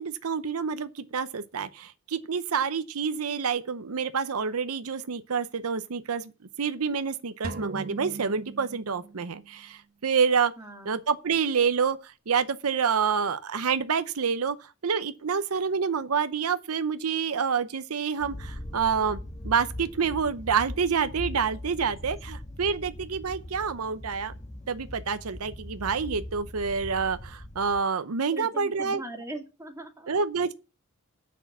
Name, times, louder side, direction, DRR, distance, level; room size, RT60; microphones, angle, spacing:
voice 1, 0.0-6.3 6.6-10.5 10.9-14.6 14.8-19.2 19.4-24.3 24.7-29.0 30.1-30.5, right 6 dB, 90° right, 0.7 m, -28 dB
sound 1, 7.4-9.5, right 3 dB, 45° right, 1.2 m, -39 dB
voice 2, 10.6-11.0 28.3-30.1, right 1 dB, 15° right, 2.0 m, -40 dB
sound 2, 18.2-27.8, left 1 dB, 35° left, 1.7 m, -40 dB
8.3 x 6.3 x 7.1 m
head